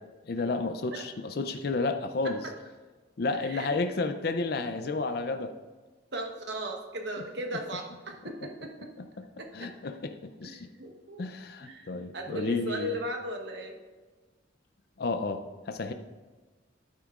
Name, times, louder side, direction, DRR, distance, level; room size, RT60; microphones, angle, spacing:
voice 1, 0.3-2.5 3.2-5.5 9.0-9.3 9.5-10.7 11.2-13.0 15.0-15.9, left 3 dB, 55° left, 8 dB, 0.5 m, -32 dB
voice 2, 6.1-8.9 9.4-9.5 10.8-11.2 11.6-13.8, equal, 65° right, 3 dB, 1.1 m, -36 dB
10.0 x 8.8 x 2.5 m, 1.3 s
head